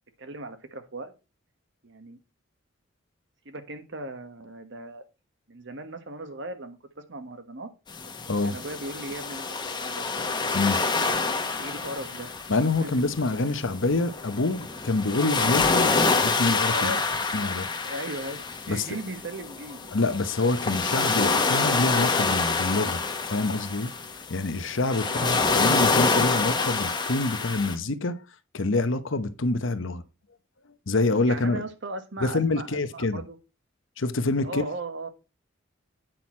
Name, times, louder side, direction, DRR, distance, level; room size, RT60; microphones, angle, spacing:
voice 1, 0.2-1.1 1.8-2.2 3.4-5.0 5.5-7.7 8.4-9.5 9.8-10.1 11.6-12.3 12.8-13.0 16.7-17.0 17.8-19.9 25.1-25.7 31.1-33.4 34.4-35.1, right 2 dB, 65° right, 1.4 m, -37 dB
sound 1, 7.9-27.8, left 4 dB, 25° left, 1.2 m, -27 dB
voice 2, 10.5-10.8 12.5-15.9 16.2-16.9 17.3-17.7 18.7-18.9 19.9-23.9 24.3-28.2 28.5-30.0 30.9-31.6 32.2-33.2 34.0-34.6, left 2 dB, 70° left, 0.9 m, -26 dB
9.0 x 6.2 x 4.4 m
head